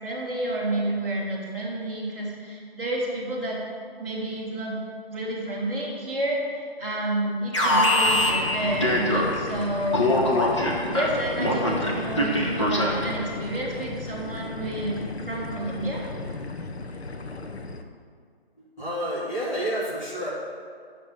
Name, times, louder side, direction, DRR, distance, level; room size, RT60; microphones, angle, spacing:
voice 1, 0.0-3.6 4.0-4.8 5.1-10.1 10.9-15.0 15.2-16.0, right 1 dB, 10° left, -12 dB, 1.8 m, -29 dB
Alarm, 7.5-9.5 9.9-13.2, left 1 dB, 30° left, 1.2 m, -23 dB
sound 1, 8.0-17.8, left 3 dB, 85° left, 1.1 m, -36 dB
voice 2, 18.8-20.3, equal, 45° left, -9 dB, 3.3 m, -29 dB
8.4 x 6.7 x 8.5 m, 2.1 s
hypercardioid pair, 175°, 31 cm